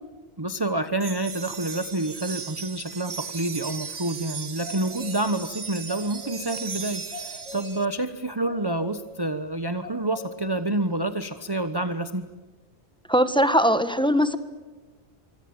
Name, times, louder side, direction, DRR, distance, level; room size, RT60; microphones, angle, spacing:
voice 1, 0.4-12.3, right 2 dB, 20° right, 10 dB, 1.1 m, -28 dB
sound 1, 1.0-7.9, right 6 dB, 85° right, 1.7 m, -37 dB
sound 2, 4.6-5.3 5.6-6.5 6.9-7.9 8.4-9.0 9.8-10.3, left 3 dB, 30° left, 8.0 m, -41 dB
voice 2, 13.1-14.4, equal, 5° left, 11 dB, 1.6 m, -20 dB
25.5 x 25.5 x 8.9 m, 1.3 s
omnidirectional pair, 1.2 m